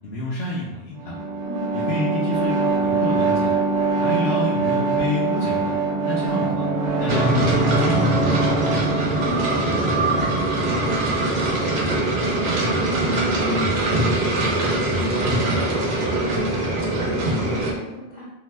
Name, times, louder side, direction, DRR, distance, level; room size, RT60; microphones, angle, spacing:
voice 1, 0.0-1.2 1.9-3.5 4.0-5.7 6.0-6.7 7.0-8.5, left 1 dB, 80° left, -6 dB, 0.8 m, -27 dB
sound 1, 1.0-16.4, right 3 dB, 50° right, 0.5 m, -25 dB
voice 2, 1.4-1.9 9.2-11.7 12.3-18.3, left 1 dB, 55° left, -4 dB, 0.6 m, -37 dB
sound 2, 7.1-17.7, right 1 dB, 80° right, 0.9 m, -22 dB
2.7 x 2.1 x 3.2 m, 0.99 s
omnidirectional pair, 1.1 m